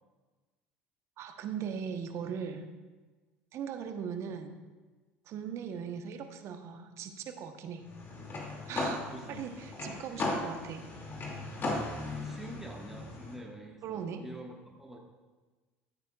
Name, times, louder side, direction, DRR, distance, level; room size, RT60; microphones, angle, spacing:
voice 1, 1.2-2.6 3.5-4.6 5.3-7.9 8.7-10.8 13.8-14.2, right 7 dB, 55° right, 7 dB, 1.0 m, -39 dB
sound 1, 7.9-13.3, left 2 dB, 40° left, 2.4 m, -37 dB
voice 2, 9.1-9.4 10.1-10.4 12.1-15.0, right 1 dB, 5° right, -1 dB, 1.6 m, -46 dB
14.0 x 8.7 x 2.4 m, 1.3 s
hypercardioid pair, 75°, 6 cm